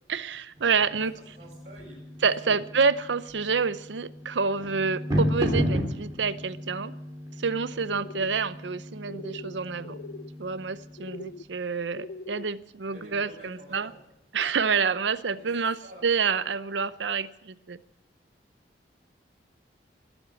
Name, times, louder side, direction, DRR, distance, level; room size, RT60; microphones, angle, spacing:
voice 1, 0.1-1.1 2.2-6.9 7.4-10.0 10.4-13.9 14.3-17.8, right 5 dB, 85° right, 0.7 m, -28 dB
sound 1, 0.5-11.3, equal, 20° right, 3.1 m, -34 dB
voice 2, 1.1-2.0 2.4-2.7 7.7-7.8 12.8-14.0 15.3-15.5 15.8-16.1, right 1 dB, 40° right, 7.9 m, -48 dB
sound 2, 7.8-8.3 9.0-9.5 9.8-10.3 11.0-11.4 11.9-12.5, left 3 dB, 80° left, 0.5 m, -41 dB
20.5 x 8.0 x 8.4 m
head